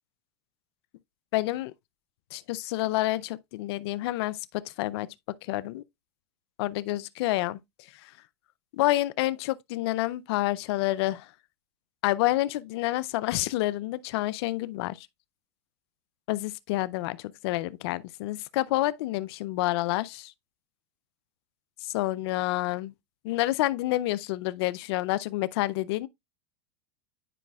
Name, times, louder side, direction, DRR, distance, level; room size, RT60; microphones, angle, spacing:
voice 1, 1.3-1.7 2.3-5.8 6.6-7.6 8.0-8.1 8.8-11.3 12.0-15.1 16.3-20.3 21.8-22.9 23.2-26.1, left 17 dB, 70° left, 0.4 m, -28 dB
9.8 x 4.9 x 2.3 m
supercardioid pair, 120°, 14 cm